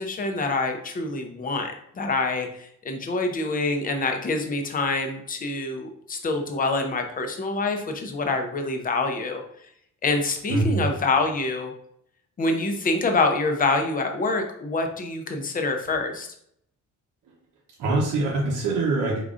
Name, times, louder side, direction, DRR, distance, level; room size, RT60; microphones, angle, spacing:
voice 1, 0.0-9.4 10.0-11.7 12.4-16.3, left 3 dB, 25° left, 5 dB, 0.5 m, -26 dB
voice 2, 10.5-10.9 17.8-19.2, right 2 dB, 80° right, -3 dB, 0.9 m, -24 dB
4.9 x 3.8 x 2.4 m, 0.69 s
wide cardioid pair, 175°, 31 cm